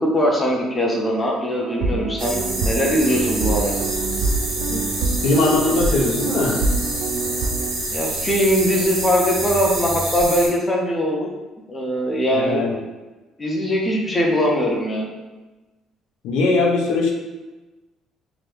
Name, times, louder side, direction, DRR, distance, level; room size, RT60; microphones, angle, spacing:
voice 1, 0.0-3.8 7.9-11.3 11.7-12.7 13.4-15.1, equal, 15° left, -2 dB, 0.5 m, -21 dB
sound 1, 1.6-7.8, right 3 dB, 70° right, 0.3 m, -25 dB
sound 2, 2.2-10.5, right 1 dB, 90° right, 1.1 m, -27 dB
voice 2, 5.2-6.6 12.3-12.8 16.2-17.1, left 3 dB, 85° left, 0 dB, 0.5 m, -20 dB
2.9 x 2.6 x 3.2 m, 1.2 s
cardioid pair, 160°, 0 cm